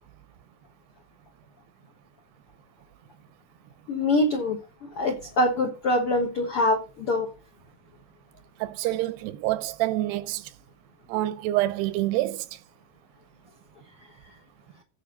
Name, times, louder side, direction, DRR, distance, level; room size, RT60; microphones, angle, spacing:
voice 1, 3.9-4.6 5.0-7.3, left 1 dB, 75° left, 1.2 m, -24 dB
voice 2, 8.6-10.5 11.1-12.5, right 16 dB, 80° right, 2.6 m, -27 dB
15.5 x 5.3 x 3.9 m
omnidirectional pair, 4.9 m